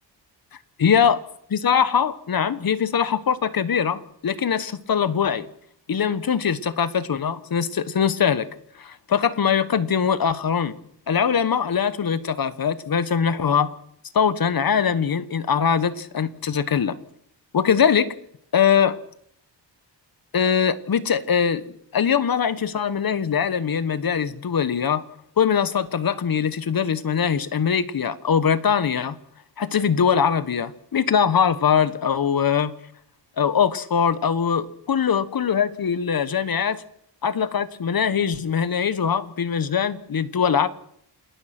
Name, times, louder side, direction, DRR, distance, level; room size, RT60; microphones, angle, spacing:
voice 1, 0.8-1.2 1.5-5.5 5.9-8.5 8.8-10.8 11.1-13.8 14.1-17.0 17.5-18.1 18.5-19.0 20.3-21.6 21.9-25.0 25.4-29.2 29.6-32.7 33.4-36.8 37.2-40.7, left 7 dB, 50° left, 1.3 m, -22 dB
28.5 x 19.5 x 6.1 m
wide cardioid pair, 125°, 44 cm